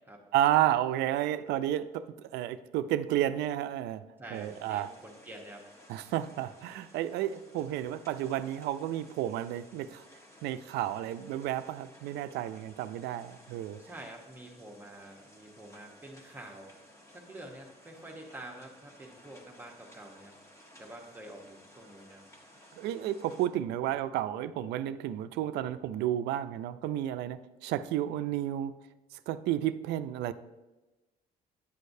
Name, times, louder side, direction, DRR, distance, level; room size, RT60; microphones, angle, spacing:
voice 1, 0.3-4.0 4.3-4.9 5.9-10.1 10.4-13.8 22.8-28.7 29.3-30.3, right 12 dB, 85° right, 12 dB, 0.4 m, -31 dB
voice 2, 4.2-5.6 13.8-16.7 17.1-20.3 20.8-22.2, right 1 dB, 10° right, -1 dB, 1.0 m, -47 dB
sound 1, 4.3-23.5, equal, 15° left, 1.2 m, -57 dB
9.9 x 6.5 x 2.7 m, 1.1 s
cardioid pair, 110°, 17 cm